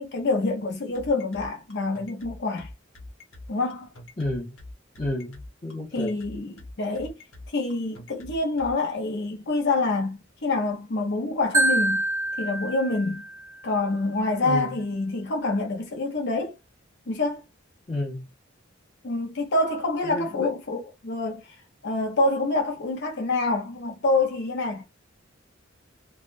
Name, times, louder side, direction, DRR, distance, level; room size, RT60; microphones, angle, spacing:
voice 1, 0.0-2.7 3.5-3.9 5.9-7.2 7.5-12.0 12.4-13.3 13.6-16.5 17.1-17.4 19.0-21.4 21.8-24.8, left 2 dB, 60° left, 0.7 m, -26 dB
sound 1, 0.9-8.7, left 2 dB, 75° left, 1.2 m, -43 dB
voice 2, 4.2-4.5 5.0-6.1 14.4-14.8 17.9-18.3 20.0-20.5, left 1 dB, 35° left, 1.4 m, -31 dB
Marimba xylophone, 11.5-13.6, right 2 dB, 15° right, 0.5 m, -26 dB
3.4 x 2.4 x 2.4 m
head